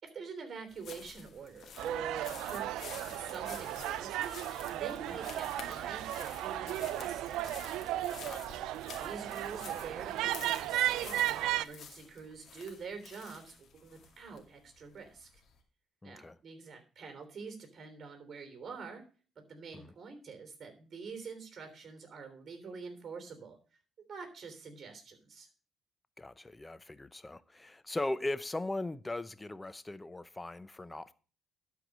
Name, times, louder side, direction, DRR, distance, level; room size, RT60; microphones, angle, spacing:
voice 1, 0.0-7.5 8.8-15.3 16.0-19.0 19.5-23.6 24.1-25.5, right 5 dB, 50° right, 3.3 m, -46 dB
sound 1, 0.7-15.6, left 6 dB, 60° left, 2.3 m, -51 dB
sound 2, 1.8-11.7, right 13 dB, 85° right, 0.4 m, -35 dB
voice 2, 16.0-16.4 19.7-19.9 26.2-31.1, left 2 dB, 15° left, 0.7 m, -39 dB
11.5 x 4.8 x 6.6 m
cardioid pair, 80°, 0 cm